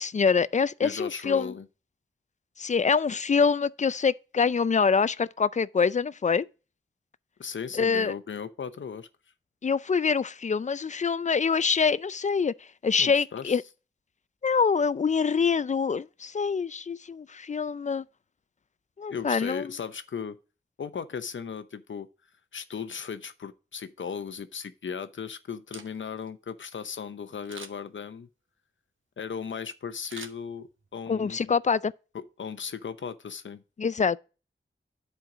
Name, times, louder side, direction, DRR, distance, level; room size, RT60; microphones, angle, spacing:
voice 1, 0.0-1.5 2.6-6.5 7.8-8.1 9.6-12.5 12.8-13.6 14.4-18.0 19.0-19.6 31.1-31.9 33.8-34.2, left 5 dB, 40° left, 0.4 m, -25 dB
voice 2, 0.8-1.7 7.4-9.1 13.0-13.6 19.1-20.4 20.8-22.1 22.5-28.3 29.2-31.6 32.1-33.6, left 6 dB, 75° left, 0.7 m, -37 dB
Camera, 25.5-26.3 27.4-28.0 30.0-31.0 31.4-31.5, right 4 dB, 80° right, 1.1 m, -46 dB
10.5 x 4.6 x 4.9 m
wide cardioid pair, 80°, 20 cm